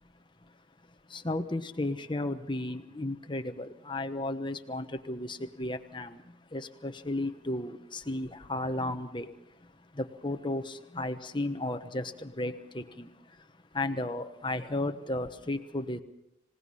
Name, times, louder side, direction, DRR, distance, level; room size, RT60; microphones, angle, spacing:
voice 1, 1.1-6.2 6.5-9.3 10.0-13.1 13.7-16.0, left 2 dB, 25° left, 8 dB, 1.1 m, -34 dB
26.5 x 18.0 x 5.6 m, 0.87 s
head